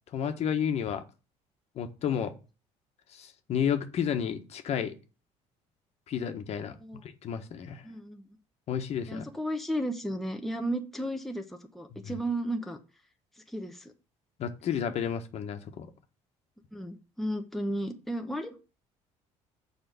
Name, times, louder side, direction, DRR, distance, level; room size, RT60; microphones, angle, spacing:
voice 1, 0.1-1.0 1.7-2.3 3.1-4.9 6.1-7.8 8.7-9.2 11.9-12.2 14.4-15.9, left 8 dB, 55° left, 6 dB, 1.4 m, -31 dB
voice 2, 7.8-8.2 9.1-11.4 11.7-12.8 13.5-13.9 16.7-18.6, right 1 dB, ahead, 4 dB, 1.0 m, -33 dB
7.1 x 4.9 x 6.6 m, 0.32 s
cardioid pair, 115°, 13 cm